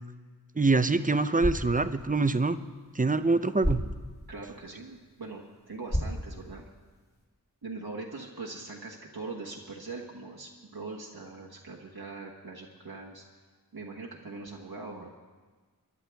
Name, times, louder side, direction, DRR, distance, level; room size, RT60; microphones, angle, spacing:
voice 1, 0.6-2.6 3.0-3.8, right 3 dB, 20° right, 11 dB, 0.6 m, -25 dB
sound 1, 1.2-7.2, equal, 25° left, 2.3 m, -36 dB
voice 2, 4.3-6.7 7.6-13.2 13.7-15.1, right 3 dB, 75° right, -2 dB, 1.3 m, -41 dB
22.5 x 11.0 x 3.5 m, 1.4 s
wide cardioid pair, 40°, 37 cm